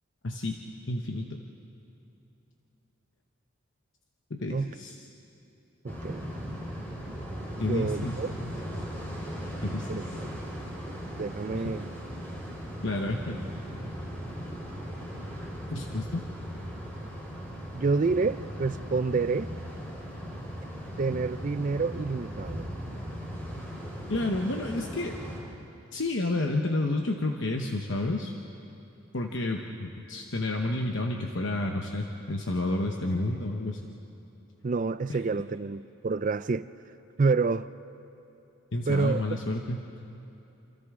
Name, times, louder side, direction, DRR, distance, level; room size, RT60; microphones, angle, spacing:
voice 1, 0.2-0.6 0.9-1.4 4.3-5.0 7.6-8.6 9.6-10.0 11.5-11.7 12.8-13.4 15.7-16.2 24.1-25.2 25.9-28.3 29.1-33.8 35.1-35.2 38.7-39.9, left 2 dB, 60° left, 1.0 m, -30 dB
voice 2, 5.8-6.5 7.5-8.3 9.9-10.3 11.2-11.9 17.7-19.5 21.0-22.7 34.6-36.7 37.2-37.7 38.9-39.2, right 4 dB, 35° right, 0.4 m, -28 dB
sound 1, 5.9-25.4, equal, 10° left, 4.1 m, -38 dB
28.5 x 27.0 x 3.7 m
head